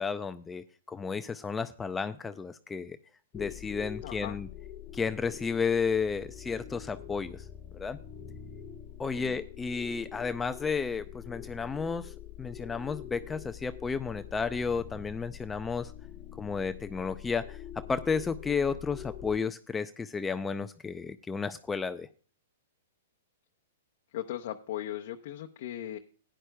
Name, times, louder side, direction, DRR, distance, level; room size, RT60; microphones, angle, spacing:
voice 1, 0.0-3.0 3.3-4.5 4.9-7.5 7.7-8.0 9.0-15.9 16.4-22.1, left 5 dB, 10° left, 10 dB, 0.4 m, -32 dB
sound 1, 3.3-19.4, left 10 dB, 35° left, 1.1 m, -45 dB
voice 2, 4.0-4.4 9.1-9.4 18.5-18.8 24.1-26.0, left 12 dB, 55° left, 3 dB, 0.8 m, -38 dB
16.5 x 10.0 x 2.2 m, 0.41 s
hypercardioid pair, 130°, 0 cm